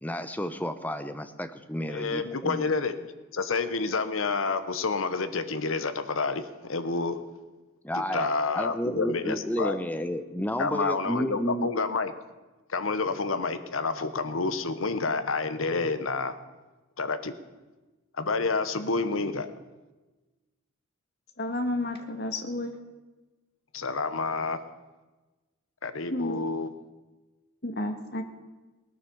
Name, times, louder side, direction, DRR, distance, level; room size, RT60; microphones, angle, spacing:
voice 1, 0.0-2.7 7.8-8.3 8.5-11.7, equal, 10° left, 9 dB, 0.8 m, -31 dB
voice 2, 1.9-3.0 3.3-7.2 7.9-9.7 10.6-12.1 12.7-16.3 17.0-17.3 18.2-19.5 23.7-24.6 25.8-26.7, left 4 dB, 75° left, 11 dB, 1.1 m, -29 dB
voice 3, 21.4-22.7 26.1-26.4 27.6-28.2, left 1 dB, 55° left, 5 dB, 1.6 m, -31 dB
19.0 x 9.6 x 7.0 m, 1.2 s
head